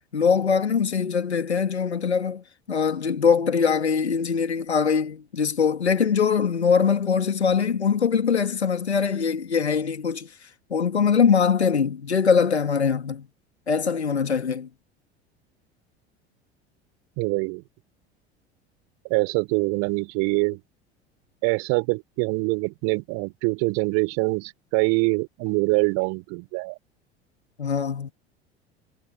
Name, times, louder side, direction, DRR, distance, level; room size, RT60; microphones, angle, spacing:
voice 1, 0.1-10.3 10.7-13.3 13.7-14.7 27.6-28.1, left 6 dB, 80° left, 2.6 m, -22 dB
voice 2, 17.2-17.6 19.1-20.6 21.4-26.8, right 31 dB, 55° right, 6.3 m, -24 dB
figure-of-eight pair, 70°, 32 cm